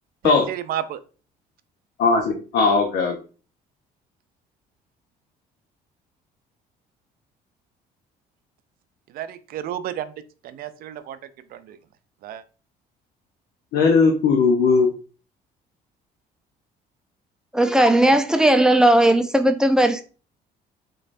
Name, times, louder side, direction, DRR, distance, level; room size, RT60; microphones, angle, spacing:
voice 1, 0.2-1.0 9.1-10.1 10.4-11.2 11.5-11.8 12.2-12.4, right 11 dB, 60° right, 0.4 m, -31 dB
voice 2, 2.0-3.2 13.7-14.9, left 4 dB, 80° left, 0.7 m, -18 dB
voice 3, 17.5-20.0, right 1 dB, 5° right, 0.4 m, -17 dB
3.8 x 3.2 x 2.5 m
cardioid pair, 110°, 17 cm